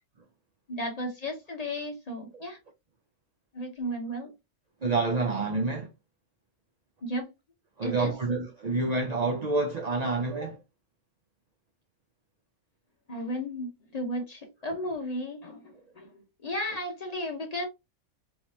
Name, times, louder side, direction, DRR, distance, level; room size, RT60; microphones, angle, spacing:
voice 1, 0.7-2.6 3.5-4.3 7.0-7.3 7.8-8.1 13.1-16.1 16.4-17.6, equal, 40° left, 0.8 m, -34 dB
voice 2, 4.8-5.9 7.8-10.6, right 3 dB, 55° right, 0.5 m, -28 dB
3.1 x 3.0 x 2.7 m
omnidirectional pair, 1.3 m